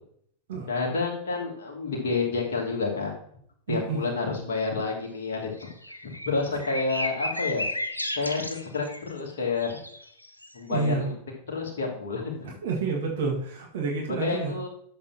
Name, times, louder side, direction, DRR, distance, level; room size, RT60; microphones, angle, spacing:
voice 1, 0.7-3.1 3.7-5.7 6.2-7.7 8.1-9.8 10.5-11.1 11.5-12.6 13.1-13.2 14.1-14.7, left 4 dB, 60° left, -1 dB, 2.7 m, -29 dB
voice 2, 3.7-4.0 10.7-11.0 12.4-14.5, right 4 dB, 60° right, -1 dB, 1.9 m, -29 dB
sound 1, 5.6-9.2 9.6-10.5, left 1 dB, 85° left, 0.7 m, -33 dB
11.5 x 7.4 x 3.0 m, 0.64 s
figure-of-eight pair, 90°, 0 cm